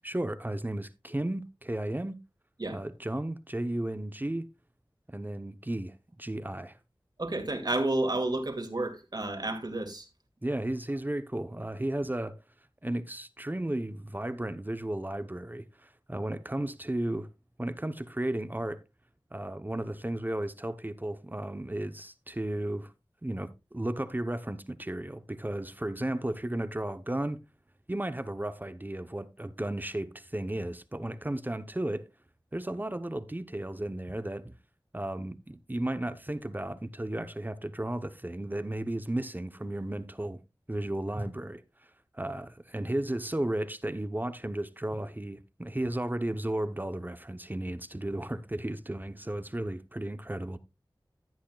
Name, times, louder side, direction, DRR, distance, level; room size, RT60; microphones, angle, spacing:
voice 1, 0.0-2.2 2.7-4.5 5.1-6.8 10.4-12.4 12.8-17.3 17.6-18.8 19.3-22.9 23.2-27.4 27.9-32.0 32.5-34.5 34.9-40.4 40.7-41.6 42.1-50.6, right 1 dB, 20° right, 0.8 m, -34 dB
voice 2, 7.2-10.1, right 2 dB, 55° right, 2.2 m, -31 dB
15.0 x 8.4 x 2.3 m
wide cardioid pair, 50°, 8 cm